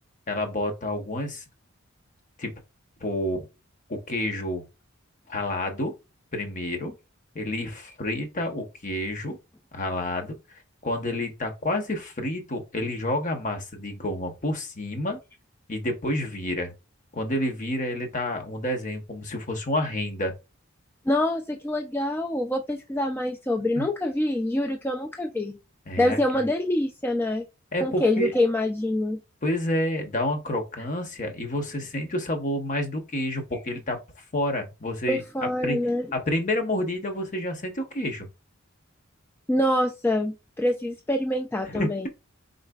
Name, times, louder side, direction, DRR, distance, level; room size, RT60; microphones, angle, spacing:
voice 1, 0.3-1.4 2.4-2.5 3.0-3.5 3.9-4.6 5.3-5.9 6.3-6.9 7.3-9.4 9.7-15.2 15.7-16.7 17.1-20.3 23.8-23.9 25.9-26.2 27.7-28.3 29.4-34.0 34.3-35.2 35.6-35.8 36.1-38.3 41.6-41.9, left 1 dB, 40° left, 0.9 m, -29 dB
voice 2, 21.1-25.6 26.0-27.4 27.8-29.2 35.1-36.1 39.5-42.1, left 1 dB, 10° left, 0.3 m, -25 dB
4.2 x 3.9 x 2.3 m
head